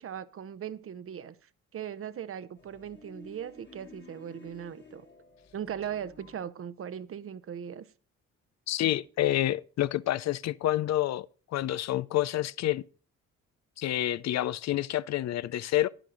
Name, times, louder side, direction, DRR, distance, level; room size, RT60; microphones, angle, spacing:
voice 1, 0.0-1.4 1.7-5.1 5.5-7.8, right 9 dB, 45° right, 0.8 m, -39 dB
sound 1, 2.6-6.5, left 3 dB, 35° left, 1.8 m, -53 dB
voice 2, 8.7-11.3 11.5-12.8 13.8-15.9, left 13 dB, 60° left, 0.5 m, -28 dB
10.0 x 9.9 x 3.9 m
cardioid pair, 90°, 30 cm